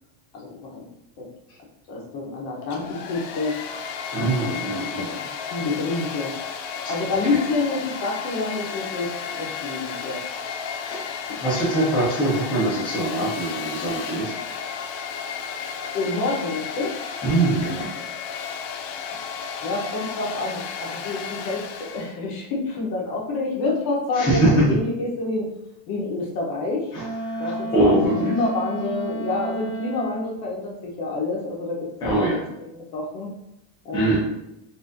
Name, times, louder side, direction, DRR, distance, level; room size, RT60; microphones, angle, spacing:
voice 1, 0.3-0.8 1.2-1.3 1.9-3.6 4.4-6.3 6.9-10.2 11.3-11.4 15.9-16.9 19.6-25.5 25.9-26.9 27.4-33.3 33.8-34.2, left 3 dB, 45° left, -2 dB, 0.9 m, -28 dB
Domestic sounds home sounds, 2.6-22.2, left 7 dB, 75° left, 0.6 m, -33 dB
voice 2, 4.1-5.1 7.3-7.4 10.8-11.1 11.4-14.3 17.2-17.9 24.2-24.7 26.9-27.0 27.4-28.3 32.0-32.4 33.9-34.2, right 1 dB, 10° left, -8 dB, 0.5 m, -22 dB
Wind instrument woodwind instrument, 26.9-30.4, right 2 dB, 65° right, 0.6 m, -31 dB
4.1 x 2.5 x 2.5 m, 0.87 s
cardioid pair, 175°, 48 cm